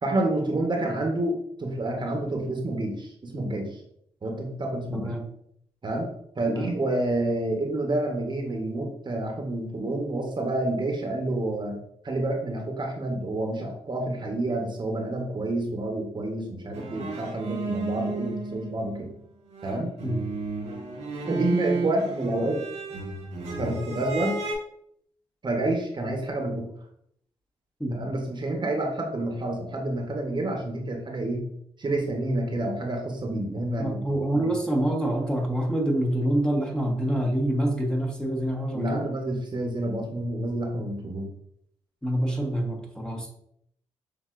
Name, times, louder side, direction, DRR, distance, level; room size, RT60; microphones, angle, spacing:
voice 1, 0.0-3.8 4.2-5.1 5.8-11.8 12.0-19.1 19.6-19.9 21.3-22.6 23.6-24.4 25.4-26.7 27.9-31.4 31.8-34.0 34.3-34.5 38.7-41.3, right 1 dB, 40° right, 2 dB, 1.0 m, -28 dB
voice 2, 4.9-5.3 6.5-6.7 20.0-20.2 27.8-28.1 33.8-39.0 42.0-43.3, right 1 dB, 5° left, 0 dB, 1.0 m, -26 dB
sound 1, 16.7-19.2 19.5-24.5, right 3 dB, 75° right, 1.1 m, -32 dB
6.6 x 2.7 x 2.5 m, 0.70 s
cardioid pair, 60°, 12 cm